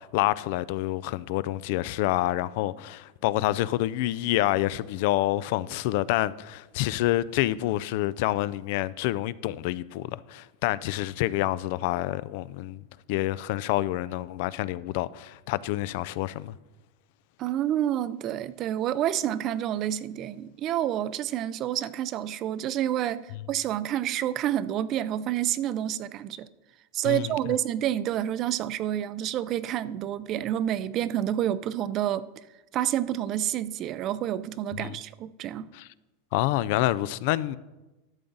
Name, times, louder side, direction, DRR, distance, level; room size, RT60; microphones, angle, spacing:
voice 1, 0.0-12.8 13.1-16.5 27.0-27.3 34.8-35.0 35.7-35.9 36.3-37.6, left 16 dB, 55° left, 0.3 m, -27 dB
voice 2, 17.4-26.5 26.9-32.2 32.7-35.7, right 11 dB, 35° right, 0.4 m, -29 dB
12.0 x 7.1 x 3.9 m
supercardioid pair, 150°, 0 cm